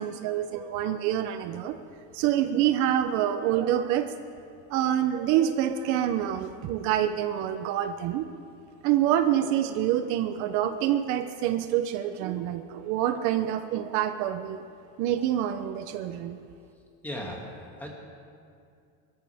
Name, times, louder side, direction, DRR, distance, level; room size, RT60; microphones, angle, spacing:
voice 1, 0.0-1.8 2.1-4.1 4.7-8.2 8.8-14.6 15.0-16.4, right 11 dB, 60° right, 9 dB, 0.7 m, -26 dB
voice 2, 17.0-17.9, equal, 5° left, -2 dB, 2.2 m, -37 dB
23.0 x 13.5 x 3.5 m, 2.3 s
cardioid pair, 160°, 32 cm